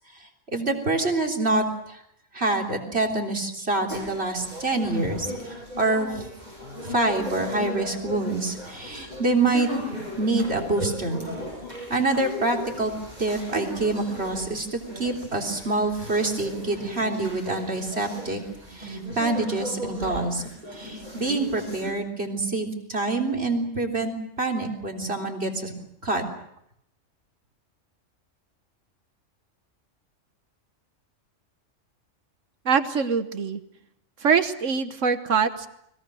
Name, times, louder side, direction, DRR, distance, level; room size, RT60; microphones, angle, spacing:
voice 1, 0.5-2.0 2.3-6.3 6.8-9.7 10.2-11.3 11.9-12.9 13.2-18.4 18.7-20.4 20.7-25.7 26.0-26.2, right 2 dB, 50° right, 1 dB, 3.9 m, -26 dB
sound 1, 3.9-21.9, equal, 30° right, 8.2 m, -37 dB
voice 2, 32.6-33.6 34.2-35.7, right 6 dB, 70° right, 10 dB, 1.5 m, -23 dB
30.0 x 22.0 x 6.4 m, 0.75 s
omnidirectional pair, 1.3 m